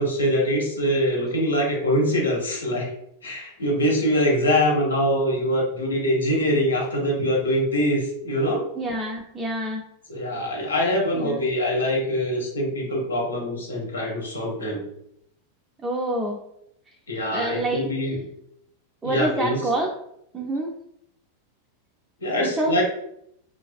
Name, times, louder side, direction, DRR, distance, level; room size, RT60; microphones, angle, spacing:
voice 1, 0.0-2.9 3.2-8.6 10.1-14.8 17.1-18.2 19.0-19.6 22.2-22.8, equal, 70° left, -1 dB, 0.7 m, -23 dB
voice 2, 8.7-9.8 11.1-11.5 15.8-16.4 17.3-18.1 19.0-19.9 20.3-20.7 22.4-22.8, right 1 dB, 15° right, -2 dB, 0.3 m, -27 dB
2.4 x 2.2 x 2.2 m, 0.74 s
figure-of-eight pair, 90°, 0 cm